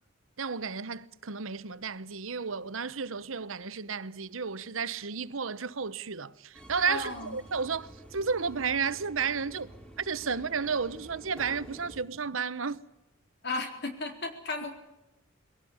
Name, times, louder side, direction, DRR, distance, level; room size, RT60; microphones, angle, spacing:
voice 1, 0.4-9.7 10.0-12.8, right 5 dB, 80° right, 0.9 m, -32 dB
Subway metro underground, 6.5-12.0, right 1 dB, 5° left, 3.0 m, -49 dB
voice 2, 6.9-7.4 13.4-14.7, left 3 dB, 55° left, 4.0 m, -34 dB
22.5 x 17.0 x 9.5 m
head